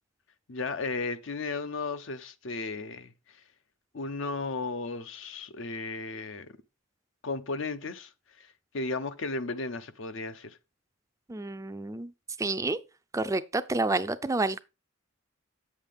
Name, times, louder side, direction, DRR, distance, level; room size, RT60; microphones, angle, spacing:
voice 1, 0.5-3.1 3.9-6.5 7.2-8.1 8.4-8.5 8.7-10.6, left 3 dB, 65° left, 0.7 m, -34 dB
voice 2, 11.3-12.1 12.4-12.8 13.1-14.6, right 2 dB, 15° right, 0.4 m, -29 dB
8.4 x 7.2 x 3.5 m
head